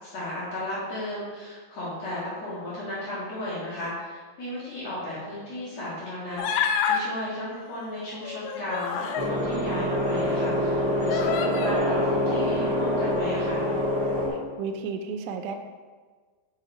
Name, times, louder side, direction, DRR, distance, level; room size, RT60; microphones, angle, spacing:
voice 1, 0.0-13.7, left 1 dB, 55° left, -8 dB, 2.1 m, -35 dB
Human voice, 6.4-7.0 8.2-9.3 10.1-10.2 11.1-11.8, left 7 dB, 90° left, 2.9 m, -27 dB
sound 1, 9.1-14.3, left 1 dB, 55° right, 0.7 m, -25 dB
voice 2, 14.3-15.6, right 5 dB, 85° right, 6 dB, 2.6 m, -33 dB
6.4 x 5.8 x 5.0 m, 1.5 s
omnidirectional pair, 5.0 m